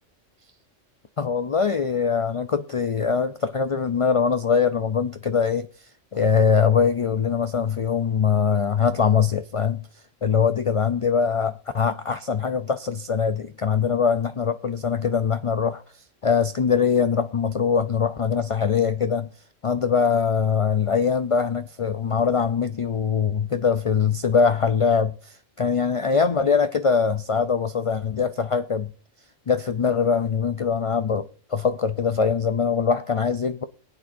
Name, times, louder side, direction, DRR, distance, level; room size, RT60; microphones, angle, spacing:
voice 1, 1.2-5.7 6.1-9.9 10.2-15.8 16.2-19.3 19.6-28.9 29.5-33.6, left 6 dB, 55° left, 0.3 m, -22 dB
22.0 x 8.9 x 2.6 m
omnidirectional pair, 1.3 m